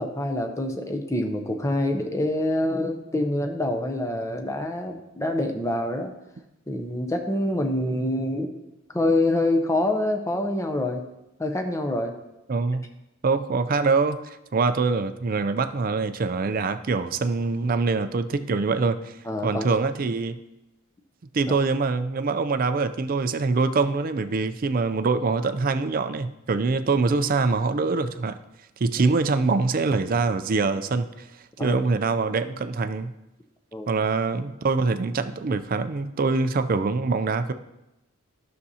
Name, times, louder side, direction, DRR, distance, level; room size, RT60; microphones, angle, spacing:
voice 1, 0.0-6.1 6.7-8.5 8.9-11.1 11.4-12.1 19.3-19.7 21.5-21.6 29.0-29.1 31.6-31.8 33.7-33.9, left 1 dB, 15° left, 4 dB, 0.6 m, -26 dB
voice 2, 12.5-12.9 13.2-20.4 21.3-28.4 28.8-33.1 33.9-37.5, right 4 dB, 40° right, 11 dB, 0.4 m, -24 dB
12.0 x 6.6 x 2.8 m, 0.93 s
head